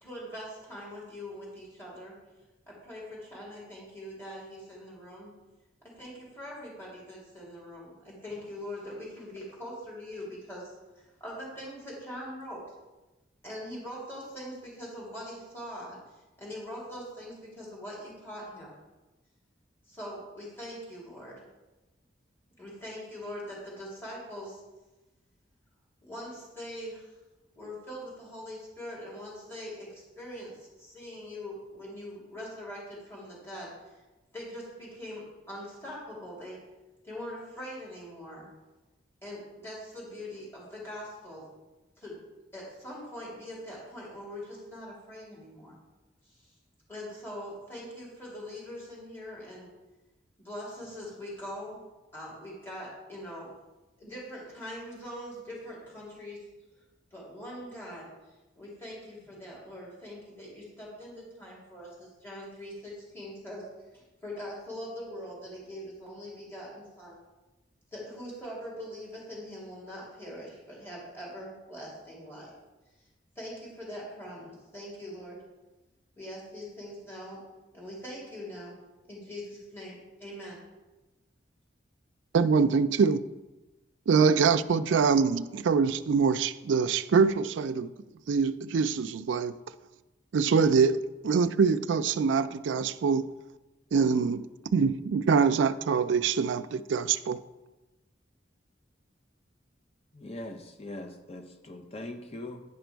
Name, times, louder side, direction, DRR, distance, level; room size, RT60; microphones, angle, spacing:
voice 1, 0.0-2.1 2.7-5.3 5.8-12.6 13.4-16.0 16.4-18.7 19.9-21.4 22.6-24.6 26.0-27.1 27.6-33.9 34.3-36.6 37.0-38.5 39.2-41.4 42.0-42.2 42.5-45.8 46.9-49.7 50.4-51.8 52.1-53.5 54.0-56.4 57.1-58.1 58.6-63.6 63.9-67.2 67.9-72.5 73.3-75.4 76.2-77.4 77.7-78.7 79.1-80.6, equal, 10° left, -6 dB, 2.6 m, -42 dB
voice 2, 82.3-83.2 84.1-87.9 88.3-89.5 90.3-93.2 93.9-94.4 94.7-97.4, right 5 dB, 80° right, 12 dB, 0.4 m, -24 dB
voice 3, 100.1-102.6, left 1 dB, 30° left, 6 dB, 0.7 m, -41 dB
9.8 x 5.0 x 4.5 m, 1.1 s
head